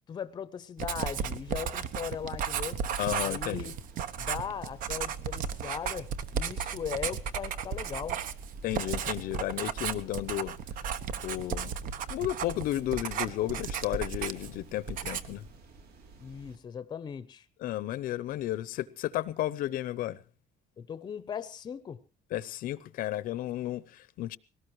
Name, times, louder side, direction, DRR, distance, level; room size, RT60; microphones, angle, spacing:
voice 1, 0.1-2.8 3.2-3.8 4.1-8.2 16.2-17.4 20.8-22.0, left 8 dB, 25° left, 0.7 m, -38 dB
Writing, 0.8-14.6 14.9-15.4, right 7 dB, 60° right, 1.1 m, -34 dB
sound 1, 1.2-16.6, right 3 dB, 75° right, 3.4 m, -53 dB
voice 2, 3.0-3.7 8.6-10.5 11.2-11.7 12.1-15.4 17.6-20.2 22.3-24.4, left 14 dB, 65° left, 0.7 m, -33 dB
21.0 x 18.0 x 3.1 m
cardioid pair, 175°, 16 cm